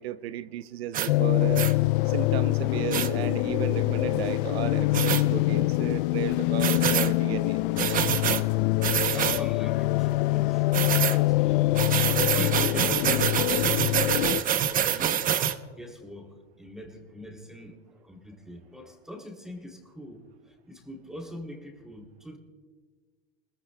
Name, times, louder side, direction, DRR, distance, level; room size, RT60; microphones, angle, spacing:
voice 1, 0.0-1.7 2.0-7.6, right 12 dB, 80° right, 12 dB, 0.7 m, -34 dB
sound 1, 0.9-1.1 1.6-1.7 2.9-3.1 4.9-5.2 6.6-7.1 7.8-8.4 8.8-9.4 10.7-11.2 11.8-15.6, right 9 dB, 25° right, 0.8 m, -26 dB
sound 2, 1.1-14.4, left 19 dB, 60° left, 0.5 m, -25 dB
voice 2, 8.9-11.7 12.1-13.4 13.8-15.3 15.7-22.4, equal, ahead, 2 dB, 2.8 m, -43 dB
29.0 x 21.5 x 2.2 m, 1.5 s
supercardioid pair, 125°, 31 cm